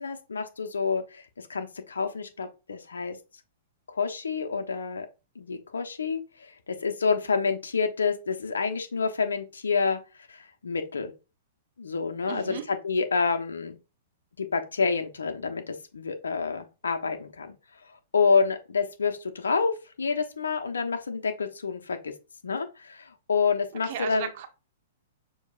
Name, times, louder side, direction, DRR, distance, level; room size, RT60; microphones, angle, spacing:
voice 1, 0.0-3.2 3.9-5.1 5.3-10.0 10.3-11.1 11.8-13.8 14.4-17.5 18.1-22.1 22.4-24.3, left 5 dB, 90° left, 1.0 m, -28 dB
voice 2, 12.3-12.6 23.8-24.5, right 9 dB, 55° right, 1.0 m, -34 dB
6.3 x 3.1 x 2.5 m
hypercardioid pair, 120°, 0 cm